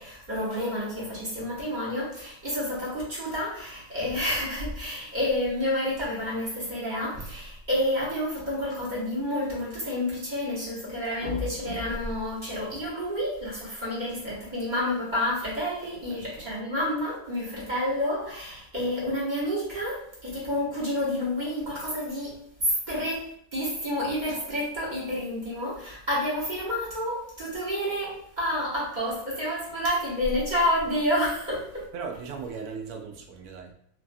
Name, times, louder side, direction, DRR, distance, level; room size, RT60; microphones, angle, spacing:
voice 1, 0.0-31.9, left 1 dB, 35° right, -7 dB, 1.0 m, -29 dB
voice 2, 16.1-16.5 31.9-33.7, right 5 dB, 90° right, 3 dB, 1.1 m, -38 dB
3.2 x 2.4 x 2.5 m, 0.67 s
omnidirectional pair, 1.5 m